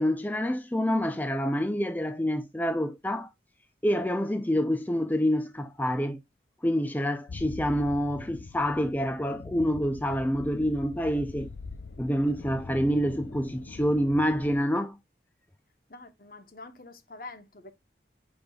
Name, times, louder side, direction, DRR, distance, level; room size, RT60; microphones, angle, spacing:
voice 1, 0.0-3.3 3.8-6.2 6.6-11.5 12.0-15.0, equal, 10° left, 0.5 m, -27 dB
sound 1, 7.3-14.6, left 4 dB, 70° left, 0.5 m, -43 dB
voice 2, 15.9-17.7, left 3 dB, 50° left, 1.1 m, -46 dB
7.8 x 5.1 x 2.3 m
head